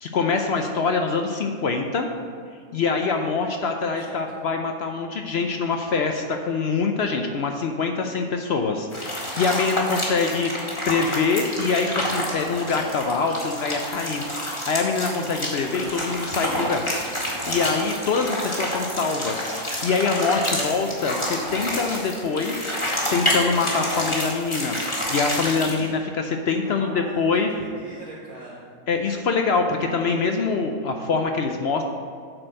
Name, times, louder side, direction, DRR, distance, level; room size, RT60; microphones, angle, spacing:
voice 1, 0.0-2.1 2.7-14.2 14.7-17.0 17.2-19.5 19.8-27.5 28.9-31.8, left 4 dB, 65° left, 4 dB, 0.7 m, -24 dB
voice 2, 4.1-4.4 26.6-27.2 27.5-28.7, right 2 dB, 80° right, -6 dB, 1.7 m, -41 dB
sound 1, 8.9-25.9, equal, 20° left, 1.6 m, -28 dB
8.8 x 4.4 x 6.3 m, 2.2 s
omnidirectional pair, 1.5 m